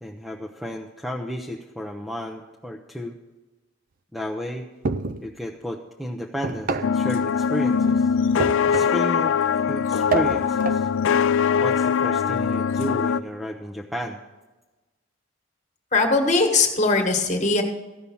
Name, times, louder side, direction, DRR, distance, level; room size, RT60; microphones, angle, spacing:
voice 1, 0.0-3.1 4.1-4.6 5.2-8.1 8.7-10.9 11.6-14.2, equal, ahead, 1 dB, 0.6 m, -33 dB
sound 1, 4.8-5.3 6.4-7.0 8.4-9.1 10.1-10.9, right 5 dB, 40° right, 0.4 m, -28 dB
sound 2, 6.8-13.2, left 6 dB, 70° left, 0.3 m, -22 dB
voice 2, 15.9-17.6, left 3 dB, 35° left, 4 dB, 1.5 m, -20 dB
15.0 x 5.6 x 7.0 m, 1.1 s
head